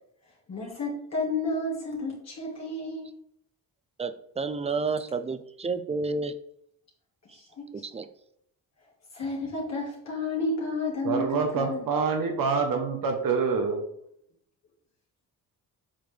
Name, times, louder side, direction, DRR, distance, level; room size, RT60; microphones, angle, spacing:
voice 1, 0.5-3.1 7.3-7.9 9.1-11.9, left 2 dB, 45° left, -3 dB, 1.8 m, -31 dB
voice 2, 4.0-6.4 7.7-8.1, right 4 dB, 20° right, 11 dB, 0.4 m, -30 dB
voice 3, 11.0-13.8, right 5 dB, 65° right, 3 dB, 1.1 m, -26 dB
7.6 x 4.2 x 3.3 m, 0.71 s
cardioid pair, 120°, 36 cm